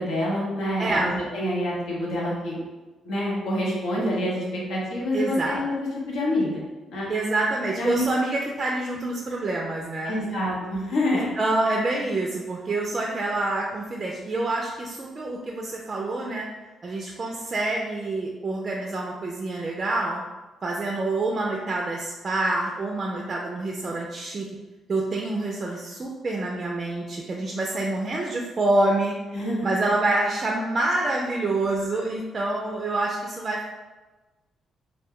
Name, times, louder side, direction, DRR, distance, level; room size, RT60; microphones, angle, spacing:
voice 1, 0.0-2.6 3.0-5.7 6.1-6.6 6.9-7.1 7.8-8.1 10.0-11.3 29.3-29.7, left 1 dB, 80° left, -4 dB, 0.9 m, -27 dB
voice 2, 0.8-1.1 5.1-5.6 7.1-10.2 11.4-16.5 16.8-20.2 20.6-24.5 24.9-29.1 29.6-33.7, right 2 dB, 35° right, -1 dB, 0.3 m, -27 dB
2.2 x 2.1 x 3.6 m, 1.2 s
cardioid pair, 90°, 0 cm